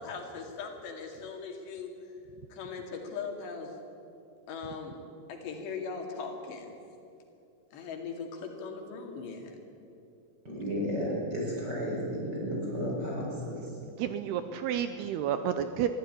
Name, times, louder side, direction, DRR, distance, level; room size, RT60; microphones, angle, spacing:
voice 1, 0.0-1.9 2.5-3.7 4.5-5.0 5.3-6.7 7.7-9.6, left 5 dB, 70° left, 3 dB, 4.6 m, -39 dB
voice 2, 10.4-13.6 14.0-14.1, equal, 20° right, -3 dB, 5.5 m, -33 dB
voice 3, 14.0-15.9, right 9 dB, 80° right, 9 dB, 2.5 m, -30 dB
22.5 x 14.5 x 9.9 m, 2.7 s
omnidirectional pair, 5.2 m